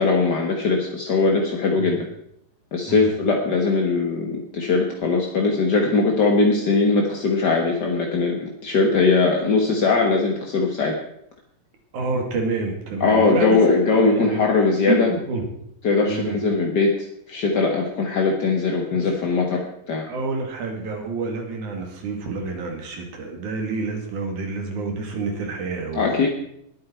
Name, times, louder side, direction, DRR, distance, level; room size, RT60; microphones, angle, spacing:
voice 1, 0.0-2.0 2.7-10.9 13.0-15.1 15.8-17.0 17.3-19.6 19.9-20.0 25.9-26.3, left 4 dB, 50° left, 1 dB, 1.2 m, -20 dB
voice 2, 11.9-13.6 13.9-14.4 14.9-15.5 16.1-16.4 18.9-19.0 20.0-26.3, right 3 dB, 65° right, 3 dB, 3.8 m, -28 dB
20.5 x 9.0 x 4.5 m, 0.74 s
omnidirectional pair, 3.9 m